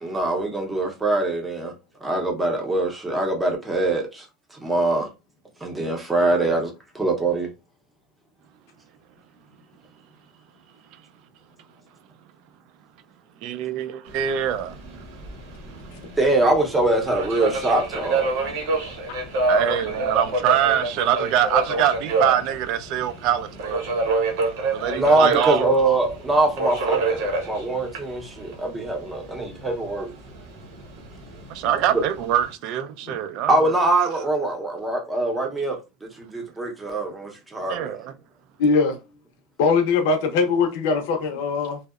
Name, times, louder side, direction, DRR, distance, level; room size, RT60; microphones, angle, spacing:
voice 1, 0.0-1.7 2.0-4.3 4.6-5.1 5.6-6.7 6.9-7.5 16.2-18.3 24.8-30.1 33.5-35.8 36.2-37.9, right 2 dB, 10° right, 0.7 m, -23 dB
voice 2, 13.4-14.8 15.7-15.9 19.5-23.8 24.7-25.7 31.5-33.7 37.7-38.1, right 10 dB, 55° right, 0.3 m, -24 dB
Subway metro underground, 14.1-32.5, right 3 dB, 75° right, 0.9 m, -28 dB
voice 3, 38.6-39.0 39.6-41.8, left 4 dB, 70° left, 0.5 m, -21 dB
2.7 x 2.0 x 2.3 m
supercardioid pair, 150°, 0 cm